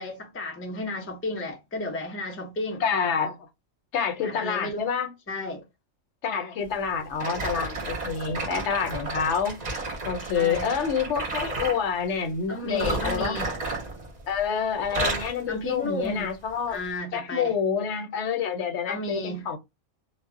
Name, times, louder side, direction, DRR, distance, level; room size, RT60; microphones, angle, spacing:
voice 1, 0.0-2.8 4.2-4.9 5.3-5.6 10.3-10.7 12.5-13.5 15.5-16.3 16.7-17.6 18.9-19.5, left 1 dB, 20° left, 0.3 m, -33 dB
voice 2, 2.8-3.4 3.9-5.1 6.2-9.5 10.0-13.4 14.3-16.8 17.1-19.6, left 6 dB, 75° left, 0.9 m, -27 dB
sound 1, 7.2-11.8 12.7-14.5 14.8-15.4 16.0-16.2 16.9-17.0, right 2 dB, 45° right, 0.7 m, -32 dB
2.0 x 2.0 x 3.5 m
omnidirectional pair, 1.2 m